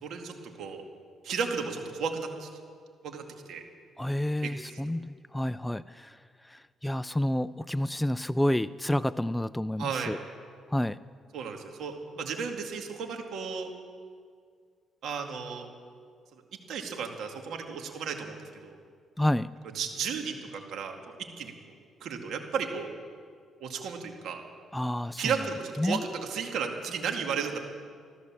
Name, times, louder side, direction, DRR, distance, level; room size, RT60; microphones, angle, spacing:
voice 1, 0.0-0.8 1.2-2.5 3.0-3.6 4.4-4.8 9.8-10.2 11.3-13.7 15.0-15.7 16.7-18.8 19.7-21.0 21.4-21.5 22.0-22.9 23.6-24.4 25.2-27.6, right 6 dB, 75° right, 3 dB, 2.0 m, -34 dB
voice 2, 4.0-6.2 6.5-10.2 10.7-11.0 19.2-19.5 24.7-25.3 25.8-26.0, left 1 dB, 5° left, 15 dB, 0.3 m, -29 dB
14.5 x 13.5 x 7.3 m, 2.1 s
cardioid pair, 90°, 0 cm